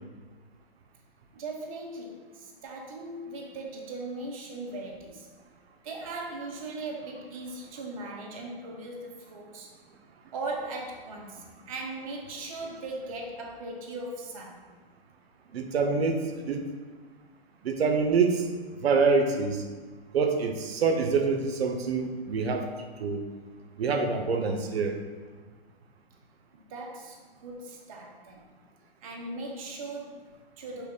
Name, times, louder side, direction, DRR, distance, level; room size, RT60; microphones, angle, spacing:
voice 1, 1.3-5.3 5.8-9.7 10.3-14.6 26.5-28.4 29.0-30.9, right 2 dB, 35° right, 0 dB, 0.6 m, -39 dB
voice 2, 15.5-16.2 16.4-16.6 17.6-18.5 18.8-19.6 20.1-22.7 23.0-23.2 23.8-25.0, right 4 dB, 75° right, 4 dB, 0.6 m, -25 dB
5.7 x 2.2 x 3.6 m, 1.4 s
hypercardioid pair, 160°, 31 cm